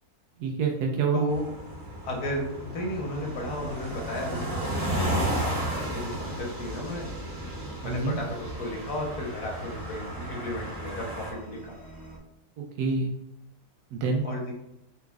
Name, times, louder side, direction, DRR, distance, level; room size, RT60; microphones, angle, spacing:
voice 1, 0.4-1.2 7.8-8.2 12.6-13.1 13.9-14.2, right 4 dB, 85° right, 1 dB, 1.2 m, -27 dB
voice 2, 1.1-1.4 2.1-7.1 7.8-11.8 14.2-14.5, left 1 dB, 75° left, 0 dB, 1.5 m, -34 dB
sound 1, 1.3-11.3, right 1 dB, 45° right, 1.5 m, -34 dB
sound 2, 3.2-12.2, right 1 dB, 10° left, 0.4 m, -45 dB
4.2 x 3.9 x 2.3 m, 0.85 s
omnidirectional pair, 1.7 m